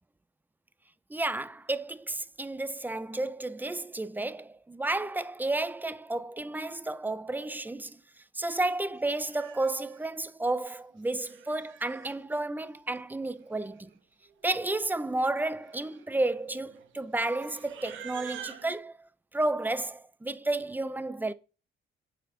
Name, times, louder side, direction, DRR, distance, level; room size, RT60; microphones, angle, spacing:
voice 1, 1.1-8.0 8.3-13.9 14.4-21.3, right 2 dB, 10° right, 0.4 m, -32 dB
Livestock farm animals working animals, 8.6-8.7 9.1-10.1 10.9-12.2 13.3-13.4 13.5-14.0 14.3-14.5 15.2-18.8, right 10 dB, 75° right, 1.1 m, -48 dB
9.1 x 4.3 x 3.7 m
cardioid pair, 90°, 20 cm